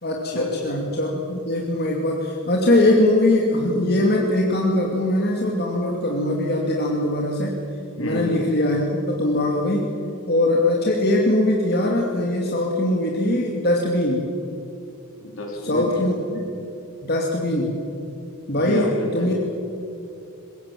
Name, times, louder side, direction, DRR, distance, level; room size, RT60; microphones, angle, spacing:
voice 1, 0.0-7.6 8.0-9.9 10.3-14.3 15.6-16.4 17.0-17.8 18.5-19.4, left 1 dB, 45° left, -1 dB, 2.6 m, -21 dB
voice 2, 8.0-8.5 15.2-16.1 18.5-19.5, left 1 dB, 70° left, 1 dB, 4.4 m, -30 dB
24.5 x 21.0 x 7.7 m, 2.7 s
head